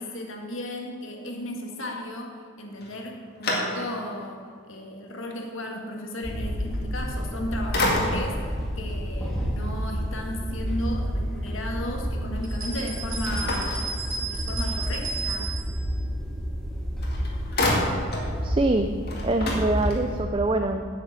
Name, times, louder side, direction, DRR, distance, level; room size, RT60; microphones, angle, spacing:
voice 1, 0.0-13.9 14.2-15.5, left 1 dB, 70° left, 1 dB, 1.7 m, -35 dB
sound 1, 2.8-4.2 4.7-4.8 7.1-7.4 7.7-8.5 13.2-14.5 16.6-16.7 17.0-18.3 18.7-18.8 19.0-20.3, left 1 dB, 50° left, 2.0 m, -29 dB
sound 2, 6.2-20.2, equal, ahead, 1.7 m, -30 dB
sound 3, 12.4-15.8, right 4 dB, 75° right, 2.2 m, -34 dB
voice 2, 18.4-18.9 19.2-20.9, right 2 dB, 25° right, 6 dB, 0.4 m, -24 dB
8.5 x 8.0 x 7.4 m, 2.1 s
head